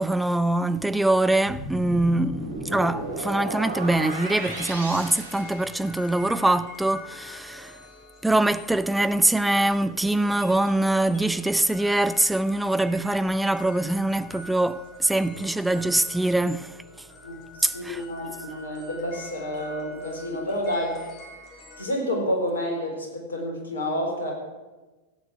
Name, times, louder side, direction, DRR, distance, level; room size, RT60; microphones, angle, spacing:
voice 1, 0.0-7.8 8.2-16.8 17.6-18.0, right 1 dB, 5° right, 0.5 m, -23 dB
sound 1, 1.5-6.2, right 2 dB, 70° right, 3.4 m, -34 dB
sound 2, 3.9-21.8, left 2 dB, 35° left, 3.9 m, -46 dB
voice 2, 17.2-21.1 21.8-24.3, equal, 70° left, 4.0 m, -29 dB
15.5 x 8.9 x 7.3 m
figure-of-eight pair, 90°, 0 cm